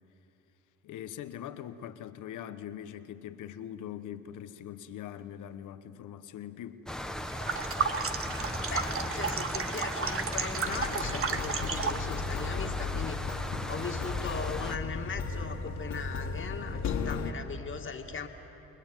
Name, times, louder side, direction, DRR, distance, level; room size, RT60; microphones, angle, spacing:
voice 1, 0.8-6.9 17.0-17.3, left 10 dB, 80° left, 1.2 m, -42 dB
sound 1, 6.9-14.8, left 1 dB, ahead, 1.4 m, -37 dB
sound 2, 7.3-12.1, right 6 dB, 45° right, 1.5 m, -33 dB
voice 2, 8.6-13.2 13.7-18.3, left 5 dB, 40° left, 2.3 m, -39 dB
sound 3, 10.7-17.3, left 4 dB, 65° left, 2.2 m, -35 dB
30.0 x 20.5 x 9.2 m
cardioid pair, 90°, 30 cm